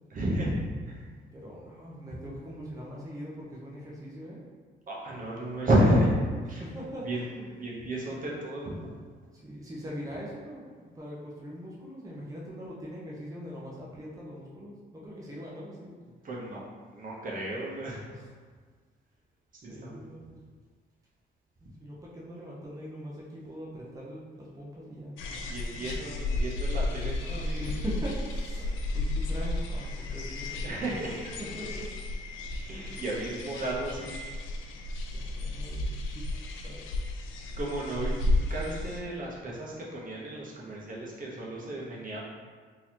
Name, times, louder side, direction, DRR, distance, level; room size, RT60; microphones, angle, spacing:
voice 1, 0.1-0.5 0.9-1.0 4.9-6.1 6.4-6.6 7.0-7.2 7.5-8.9 16.2-16.6 16.9-18.0 19.5-20.1 23.4-23.5 25.4-27.7 30.6-31.1 32.7-34.2 37.5-42.2, right 1 dB, 45° right, -4 dB, 0.9 m, -31 dB
voice 2, 1.3-4.4 6.5-7.5 9.3-15.9 18.1-18.3 19.6-20.4 21.6-25.2 25.6-25.9 27.5-31.0 31.4-32.0 32.5-33.0 35.1-36.8, equal, 15° right, -5 dB, 0.7 m, -42 dB
sound 1, 25.2-39.0, left 2 dB, 85° left, 0.4 m, -33 dB
3.8 x 2.8 x 2.9 m, 1.5 s
cardioid pair, 90°, 20 cm